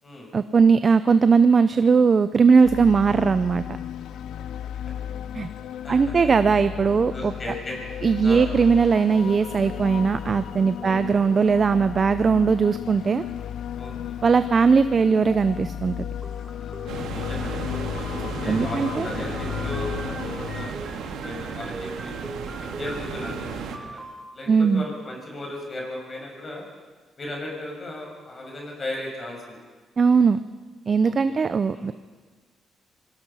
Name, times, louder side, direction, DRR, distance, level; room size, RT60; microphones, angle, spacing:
voice 1, 0.3-3.6 5.3-5.5 5.9-7.3 8.0-13.2 14.2-16.1 18.5-19.1 24.5-24.8 30.0-30.4 30.9-31.9, right 5 dB, 40° right, 12 dB, 0.7 m, -19 dB
sound 1, 2.6-20.7, left 10 dB, 75° left, 0.6 m, -34 dB
voice 2, 5.8-6.3 7.1-7.8 8.2-8.5 10.8-11.0 13.8-14.2 16.8-21.0 21.2-22.1 22.6-24.0 24.3-26.6 27.2-29.6 31.0-31.4 31.7-31.9, left 1 dB, 35° left, 0 dB, 6.5 m, -36 dB
sound 2, 16.2-24.2, right 2 dB, 20° right, 2.2 m, -41 dB
sound 3, 16.9-23.8, right 6 dB, 80° right, 2.1 m, -34 dB
25.0 x 19.5 x 5.7 m, 1.4 s
cardioid pair, 90°, 0 cm